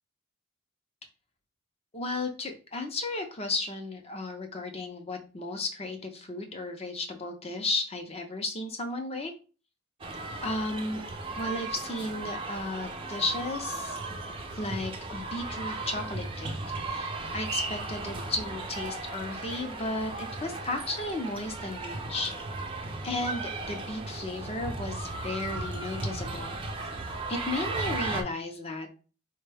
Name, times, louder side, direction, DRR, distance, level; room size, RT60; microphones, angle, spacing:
voice 1, 1.9-9.3 10.4-11.0 11.4-14.0 14.6-16.5 16.9-22.3 23.0-26.6 27.3-29.0, left 2 dB, 30° left, 5 dB, 0.6 m, -34 dB
sound 1, 10.0-28.2, right 2 dB, 25° right, 0.4 m, -36 dB
4.4 x 2.2 x 3.3 m, 0.35 s
head